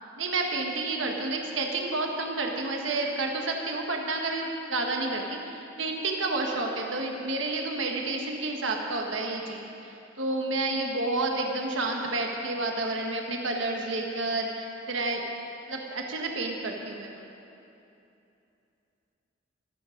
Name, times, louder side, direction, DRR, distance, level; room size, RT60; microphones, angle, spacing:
voice 1, 0.2-15.2 15.7-17.1, right 2 dB, 70° right, 1 dB, 1.3 m, -30 dB
23.0 x 8.4 x 5.1 m, 2.8 s
head